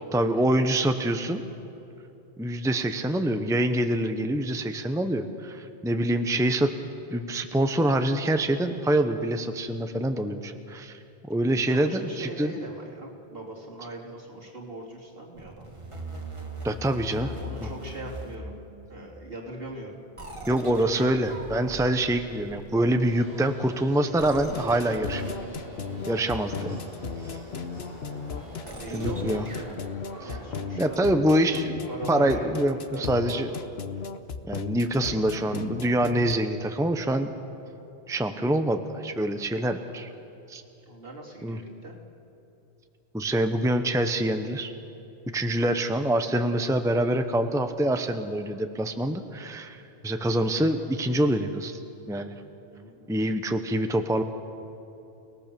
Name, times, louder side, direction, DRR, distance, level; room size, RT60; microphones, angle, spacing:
voice 1, 0.1-1.4 2.4-6.7 7.1-12.5 16.6-17.3 17.6-17.7 20.5-25.3 26.1-26.8 28.9-29.4 30.2-30.3 30.8-31.8 32.1-33.5 34.5-37.3 38.1-40.1 40.5-40.6 41.4-41.6 43.1-44.7 45.3-51.8 52.1-52.3 53.1-54.2, right 1 dB, 5° right, 7 dB, 0.8 m, -25 dB
voice 2, 11.5-15.7 17.1-18.5 18.9-20.0 26.7-26.8 28.7-29.8 30.2-31.3 31.9-33.7 35.2-35.7 40.9-42.0 52.7-53.2, right 2 dB, 65° right, -2 dB, 3.4 m, -40 dB
sound 1, 15.4-19.1 20.2-23.2 24.2-29.8, right 1 dB, 30° right, 2.1 m, -41 dB
sound 2, 23.0-31.2, equal, 35° left, 5.9 m, -45 dB
sound 3, 24.3-36.3, left 6 dB, 75° left, 1.2 m, -35 dB
30.0 x 18.5 x 6.9 m, 2.9 s
omnidirectional pair, 1.1 m